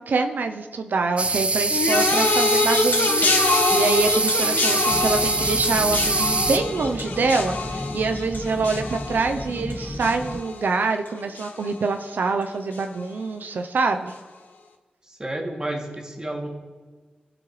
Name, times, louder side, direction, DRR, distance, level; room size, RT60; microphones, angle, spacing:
voice 1, 0.0-14.1, right 4 dB, 80° right, 5 dB, 0.6 m, -25 dB
sound 1, 1.2-6.6, right 3 dB, 40° right, 0.5 m, -23 dB
sound 2, 1.7-11.1 11.4-11.9 12.7-12.8, left 4 dB, 90° left, 1.1 m, -25 dB
sound 3, 4.9-10.4, left 1 dB, 20° left, 1.3 m, -34 dB
voice 2, 15.0-16.5, right 1 dB, 25° right, -1 dB, 2.5 m, -31 dB
20.5 x 7.7 x 3.2 m, 1.4 s
wide cardioid pair, 70°, 3 cm